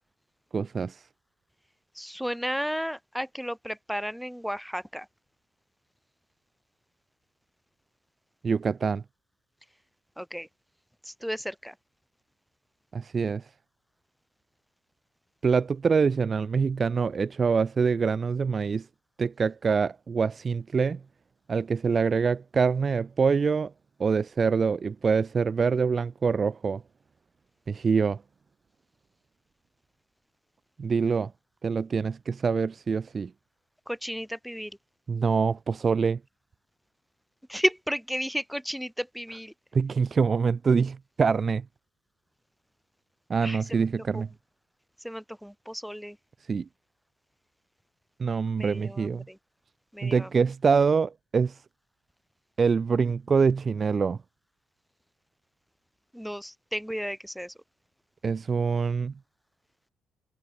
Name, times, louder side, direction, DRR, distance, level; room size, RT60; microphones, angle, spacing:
voice 1, 0.5-1.0 8.4-9.0 12.9-13.5 15.4-18.9 19.2-21.0 21.5-23.7 24.0-26.8 27.7-28.2 30.8-31.3 31.6-33.3 35.1-36.2 39.7-41.6 43.3-44.3 46.5-46.7 48.2-49.2 50.0-51.6 52.6-54.2 58.2-59.1, right 5 dB, 40° right, 0.4 m, -25 dB
voice 2, 1.9-5.1 10.2-10.5 11.0-11.7 33.9-34.8 37.5-39.5 43.4-43.9 44.1-44.2 45.0-46.2 48.6-49.4 49.9-50.3 56.1-57.5, equal, ahead, 3.6 m, -33 dB
cardioid pair, 90°, 0 cm